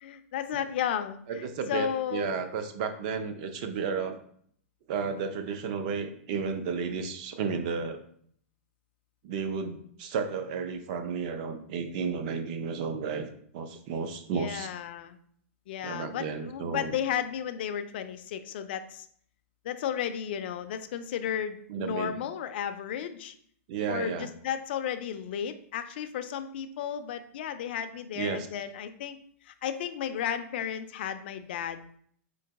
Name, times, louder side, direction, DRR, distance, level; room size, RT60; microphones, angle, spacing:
voice 1, 0.0-2.3 14.3-15.2 15.7-19.1 19.6-23.3 23.9-29.2 29.5-31.9, left 9 dB, 45° left, 9 dB, 0.4 m, -34 dB
voice 2, 1.3-4.2 4.9-8.0 9.2-13.3 13.5-14.7 15.8-17.0 21.7-22.2 23.7-24.3 28.2-28.5, right 5 dB, 35° right, 8 dB, 0.4 m, -32 dB
3.9 x 2.8 x 4.6 m, 0.62 s
hypercardioid pair, 170°, 8 cm